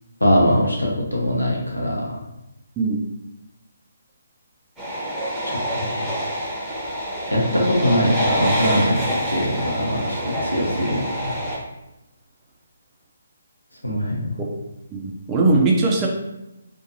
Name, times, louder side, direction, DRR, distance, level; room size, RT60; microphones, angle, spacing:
voice 1, 0.2-2.1 5.4-6.1 7.3-9.0 9.3-11.3 13.8-14.4, equal, 90° left, -2 dB, 0.8 m, -22 dB
sound 1, 4.8-11.6, equal, ahead, 0.8 m, -26 dB
voice 2, 14.9-16.1, right 3 dB, 20° right, -1 dB, 0.4 m, -19 dB
2.6 x 2.2 x 2.7 m, 0.92 s
figure-of-eight pair, 140°, 0 cm